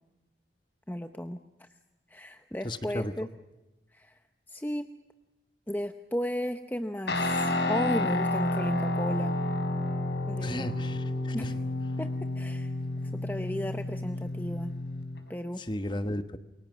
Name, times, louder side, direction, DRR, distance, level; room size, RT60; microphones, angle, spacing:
voice 1, 0.9-1.7 2.1-3.3 3.9-4.2 4.5-4.9 5.7-9.3 10.3-10.7 11.3-11.5 12.0-12.1 12.3-12.7 13.1-14.7 15.3-15.6, equal, 10° left, 7 dB, 0.8 m, -35 dB
voice 2, 2.6-3.1 10.4-11.5 15.6-16.4, left 1 dB, 25° left, 10 dB, 1.2 m, -34 dB
Guitar, 7.1-15.2, left 1 dB, 70° left, 4.7 m, -30 dB
28.5 x 23.5 x 6.2 m, 1.1 s
head